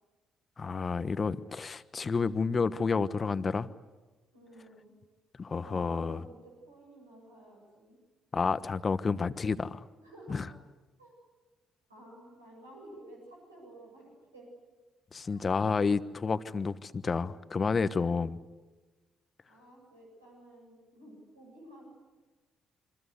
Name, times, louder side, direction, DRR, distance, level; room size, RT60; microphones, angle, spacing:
voice 1, 0.6-3.7 5.4-6.2 8.3-9.8 10.3-10.5 15.1-18.4, left 4 dB, 35° left, 14 dB, 1.2 m, -30 dB
voice 2, 4.3-4.9 5.6-8.0 10.0-10.5 11.0-11.1 11.9-14.5 15.2-15.4 19.5-21.9, right 1 dB, 90° right, -3 dB, 7.8 m, -52 dB
28.5 x 25.0 x 8.3 m, 1.2 s
figure-of-eight pair, 45°, 0 cm